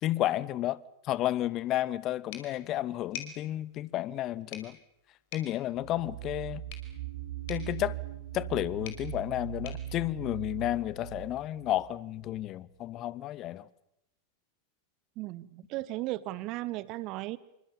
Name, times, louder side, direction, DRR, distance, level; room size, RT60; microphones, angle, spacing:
voice 1, 0.0-4.8 5.3-6.6 7.5-8.0 8.3-13.7, left 14 dB, 35° left, 0.9 m, -32 dB
sound 1, 2.3-11.0, left 8 dB, 50° left, 5.1 m, -50 dB
sound 2, 5.7-12.4, right 12 dB, 60° right, 1.7 m, -40 dB
voice 2, 15.2-17.4, right 18 dB, 40° right, 1.0 m, -36 dB
27.0 x 25.0 x 7.2 m
figure-of-eight pair, 90°, 0 cm